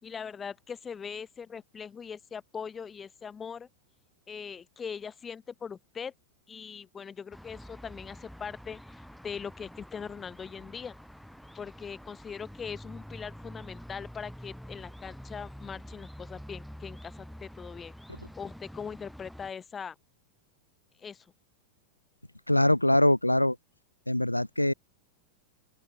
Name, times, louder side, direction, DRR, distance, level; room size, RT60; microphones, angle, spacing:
voice 1, 0.0-3.7 4.3-6.1 6.5-10.9 11.5-17.9 18.4-19.9 21.0-21.3, left 6 dB, 20° left, 5.1 m, -41 dB
sound 1, 7.3-19.5, equal, ahead, 2.8 m, -47 dB
voice 2, 22.5-23.6 24.1-24.7, left 1 dB, 85° left, 0.8 m, -23 dB
open air
figure-of-eight pair, 90°, 0 cm